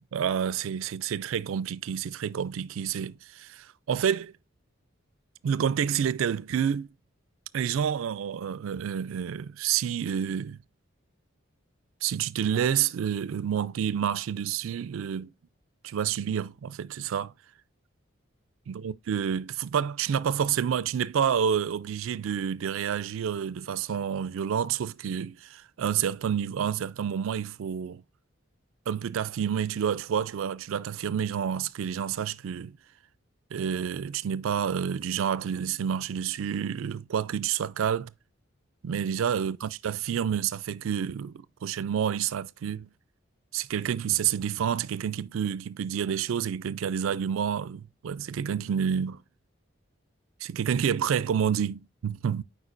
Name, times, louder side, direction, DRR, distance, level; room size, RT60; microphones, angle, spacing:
voice 1, 0.1-4.3 5.4-6.9 7.5-10.6 12.0-15.3 15.8-17.3 18.7-28.0 28.9-32.8 33.5-38.1 38.8-42.9 43.5-49.2 50.4-52.4, right 8 dB, 80° right, 0.3 m, -29 dB
8.1 x 4.9 x 2.5 m
head